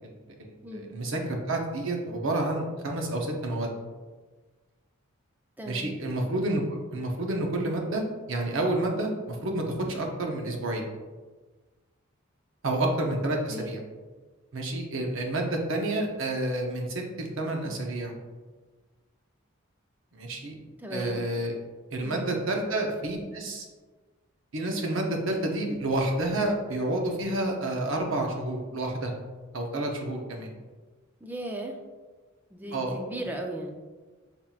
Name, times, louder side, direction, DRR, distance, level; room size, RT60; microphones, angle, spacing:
voice 1, 0.0-3.7 5.6-10.8 12.6-13.8 14.5-18.1 20.1-20.6 20.9-21.5 21.9-23.7 24.5-29.1 29.5-30.5 32.7-33.0, right 1 dB, 65° right, 2 dB, 0.7 m, -29 dB
voice 2, 5.6-5.9 13.5-13.8 20.8-21.2 22.0-22.4 31.2-31.7 32.5-33.7, right 1 dB, 10° right, 2 dB, 0.4 m, -36 dB
5.7 x 3.6 x 2.4 m, 1.3 s
head